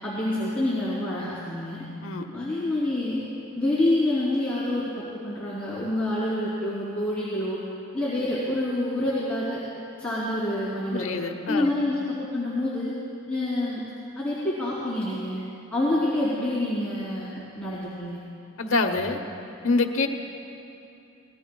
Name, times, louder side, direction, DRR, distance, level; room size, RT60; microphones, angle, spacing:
voice 1, 0.0-1.9 2.3-3.2 3.5-7.6 7.9-9.6 10.0-11.2 11.5-12.9 13.3-13.8 14.2-15.4 15.7-18.2, left 1 dB, 5° left, -10 dB, 3.1 m, -27 dB
voice 2, 10.9-11.7 18.6-19.2 19.6-20.1, left 3 dB, 70° left, 5 dB, 0.9 m, -25 dB
26.0 x 20.0 x 2.3 m, 2.7 s
head